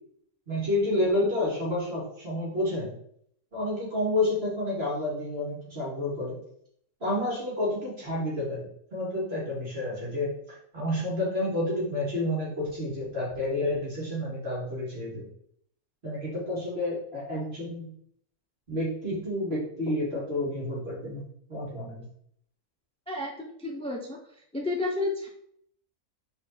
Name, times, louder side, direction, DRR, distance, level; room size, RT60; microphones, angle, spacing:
voice 1, 0.5-2.9 3.5-6.4 7.0-8.7 8.9-15.3 16.0-17.9 18.7-21.2 21.5-22.1, left 1 dB, 40° right, -6 dB, 3.6 m, -30 dB
voice 2, 23.1-24.2 24.5-25.3, left 2 dB, 5° left, 1 dB, 0.7 m, -31 dB
6.6 x 5.1 x 4.5 m, 0.68 s
omnidirectional pair, 1.6 m